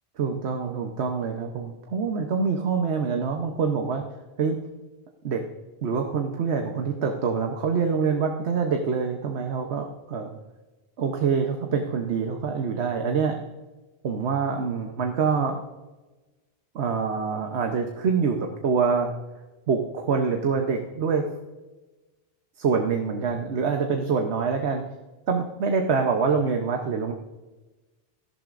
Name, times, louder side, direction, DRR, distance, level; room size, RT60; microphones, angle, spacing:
voice 1, 0.2-4.0 4.4-4.6 5.2-5.4 5.8-10.4 11.0-13.4 14.0-15.6 16.7-19.1 19.7-21.2 22.6-24.8 25.3-27.1, right 5 dB, 80° right, 3 dB, 1.2 m, -25 dB
14.0 x 11.5 x 2.5 m, 1.2 s
omnidirectional pair, 1.1 m